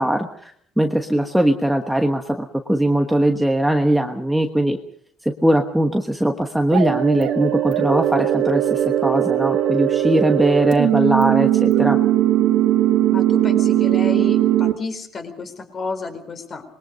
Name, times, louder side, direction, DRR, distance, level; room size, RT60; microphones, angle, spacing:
voice 1, 0.0-4.8 5.2-12.0, right 1 dB, 5° right, 4 dB, 1.3 m, -20 dB
sound 1, 6.7-14.7, right 12 dB, 70° right, 2.1 m, -19 dB
voice 2, 13.1-16.6, left 4 dB, 30° left, 7 dB, 4.1 m, -31 dB
26.5 x 21.5 x 5.3 m, 0.62 s
cardioid pair, 155°, 0 cm